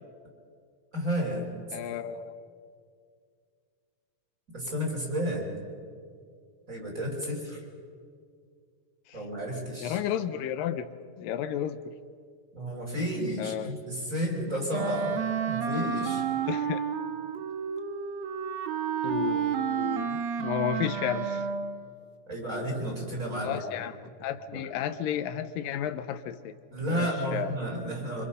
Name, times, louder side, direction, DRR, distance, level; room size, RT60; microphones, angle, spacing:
voice 1, 0.9-1.5 4.5-5.5 6.7-7.6 9.1-10.0 12.5-15.2 15.5-16.2 22.3-23.6 24.5-24.6 26.7-28.2, equal, 20° right, -1 dB, 4.7 m, -32 dB
voice 2, 1.7-2.3 9.1-9.2 9.8-10.9 11.2-11.9 13.4-13.7 16.5-16.8 19.0-21.4 23.4-26.5 26.9-27.6, left 10 dB, 80° left, 11 dB, 2.4 m, -32 dB
Wind instrument woodwind instrument, 14.7-21.9, right 7 dB, 65° right, 2.1 m, -31 dB
26.0 x 26.0 x 5.5 m, 2.2 s
omnidirectional pair, 3.9 m